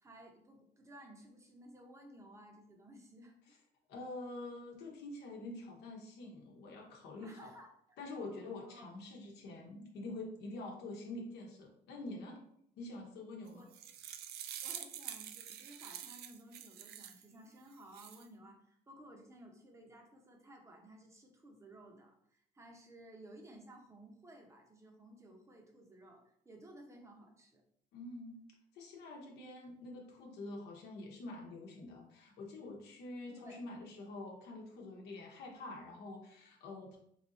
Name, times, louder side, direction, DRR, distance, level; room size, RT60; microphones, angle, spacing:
voice 1, 0.0-3.6 7.2-8.9 13.5-13.7 14.6-27.6 33.3-33.6, right 1 dB, 15° right, 1 dB, 0.8 m, -56 dB
voice 2, 3.9-7.5 8.0-12.4 12.8-13.7 27.9-28.4 28.7-37.0, left 2 dB, 80° left, -1 dB, 0.9 m, -46 dB
sound 1, 13.5-17.2 17.7-18.2, right 10 dB, 70° right, 0.4 m, -47 dB
3.2 x 2.5 x 4.0 m, 0.70 s
cardioid pair, 110°, 17 cm